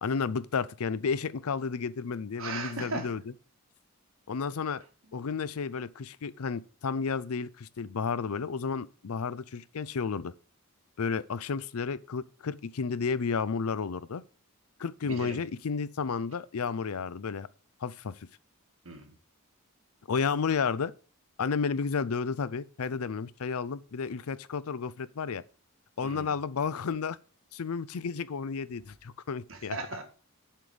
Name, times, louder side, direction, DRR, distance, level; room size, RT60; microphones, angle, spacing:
voice 1, 0.0-3.2 4.3-4.8 5.1-10.3 11.0-14.2 14.8-17.5 17.8-18.2 20.1-20.9 21.4-25.4 26.0-27.2 27.5-29.8, left 5 dB, 90° left, 0.5 m, -32 dB
voice 2, 2.4-3.1 15.0-15.4 18.8-19.1 26.0-26.3 29.5-30.0, right 3 dB, 70° right, 1.9 m, -37 dB
7.5 x 5.1 x 7.0 m
head